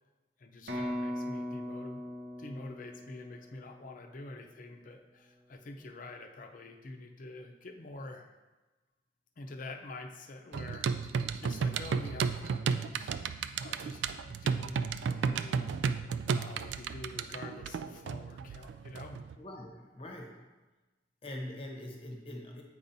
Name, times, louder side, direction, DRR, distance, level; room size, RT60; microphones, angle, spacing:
voice 1, 0.4-2.0 2.4-8.3 9.4-11.1 11.4-13.2 13.6-15.7 16.3-19.2, left 2 dB, 50° left, 4 dB, 0.5 m, -47 dB
sound 1, 0.7-4.5, left 1 dB, 65° right, 0.9 m, -39 dB
sound 2, 10.5-19.4, right 6 dB, 85° right, 0.3 m, -33 dB
voice 2, 19.4-20.4 21.2-22.6, left 1 dB, 35° left, 1 dB, 0.9 m, -43 dB
8.4 x 4.7 x 2.6 m, 1.2 s
head